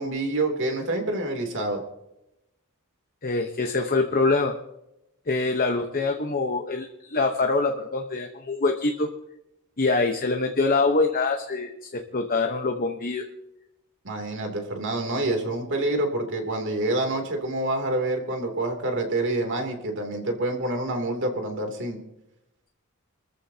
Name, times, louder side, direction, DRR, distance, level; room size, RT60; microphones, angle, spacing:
voice 1, 0.0-1.8 14.0-22.0, right 2 dB, 60° right, 3 dB, 2.9 m, -27 dB
voice 2, 3.2-4.5 5.3-9.1 9.8-13.2, left 3 dB, 40° left, 4 dB, 1.0 m, -24 dB
28.5 x 14.0 x 2.8 m, 0.89 s
head